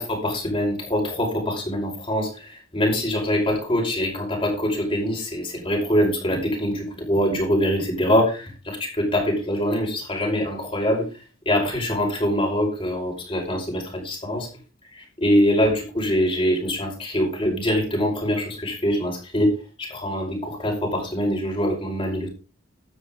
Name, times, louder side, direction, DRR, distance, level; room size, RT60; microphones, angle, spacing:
voice 1, 0.0-11.1 11.5-14.5 14.9-22.3, equal, 25° left, -1 dB, 5.4 m, -24 dB
14.0 x 12.0 x 3.8 m, 0.32 s
head